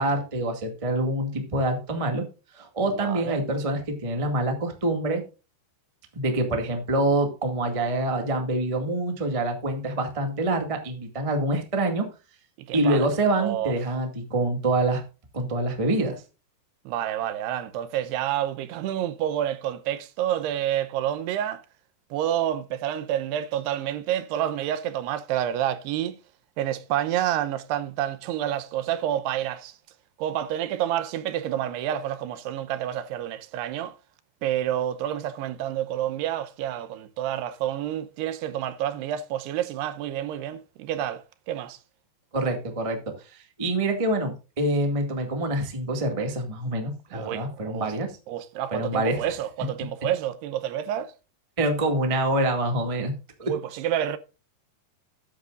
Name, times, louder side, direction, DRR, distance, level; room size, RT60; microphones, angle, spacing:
voice 1, 0.0-2.2 2.5-5.2 6.1-12.1 12.7-15.0 15.3-16.2 42.3-48.2 48.7-49.2 51.6-53.1, right 1 dB, 50° right, 0.4 m, -26 dB
voice 2, 3.0-3.4 12.7-13.1 13.4-13.7 16.9-21.6 22.1-26.2 26.6-29.8 30.2-33.9 34.4-41.8 47.1-47.9 48.3-51.1 53.4-54.2, right 11 dB, 80° right, 2.8 m, -29 dB
13.5 x 10.0 x 2.5 m
omnidirectional pair, 4.8 m